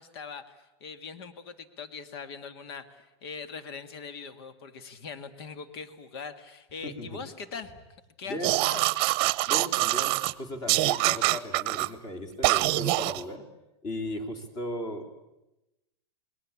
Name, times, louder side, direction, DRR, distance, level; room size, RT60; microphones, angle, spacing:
voice 1, 0.0-7.7 8.2-8.9, left 5 dB, 65° left, 11 dB, 2.1 m, -41 dB
voice 2, 6.8-7.2 8.3-8.7 9.5-13.4 13.8-15.2, left 1 dB, 30° left, 7 dB, 3.0 m, -37 dB
sound 1, 8.4-10.3 10.7-11.9 12.4-13.2, right 20 dB, 40° right, 0.8 m, -25 dB
28.5 x 21.0 x 8.6 m, 0.96 s
supercardioid pair, 155°, 14 cm